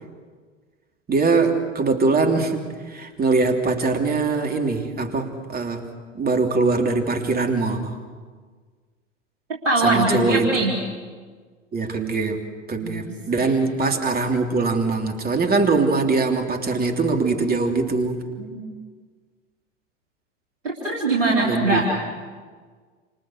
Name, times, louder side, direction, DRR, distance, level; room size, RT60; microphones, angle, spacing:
voice 1, 1.1-5.9 6.1-8.0 9.8-10.7 11.7-18.2 21.4-21.8, right 3 dB, 25° right, 4 dB, 3.3 m, -22 dB
voice 2, 9.6-10.7 12.8-13.5 18.4-18.6 20.6-21.8, right 2 dB, 80° right, -3 dB, 4.3 m, -22 dB
29.0 x 28.5 x 6.6 m, 1.5 s
figure-of-eight pair, 85°, 37 cm